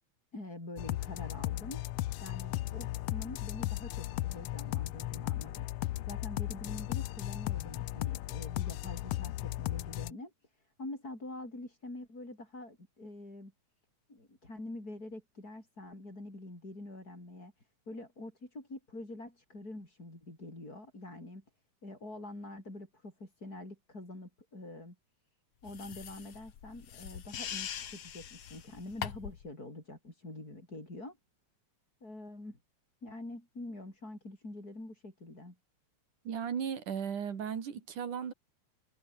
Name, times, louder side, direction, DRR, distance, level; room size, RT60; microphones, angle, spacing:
voice 1, 0.3-1.8 2.2-5.7 6.1-13.5 14.1-21.4 21.8-24.9 25.6-31.2 32.0-32.6 33.0-35.6, left 2 dB, 30° left, 8.4 m, -46 dB
sound 1, 0.8-10.1, left 16 dB, 75° left, 1.5 m, -36 dB
sound 2, 25.7-29.5, left 8 dB, 55° left, 2.6 m, -43 dB
voice 2, 36.3-38.3, right 7 dB, 85° right, 4.3 m, -36 dB
omnidirectional pair, 3.4 m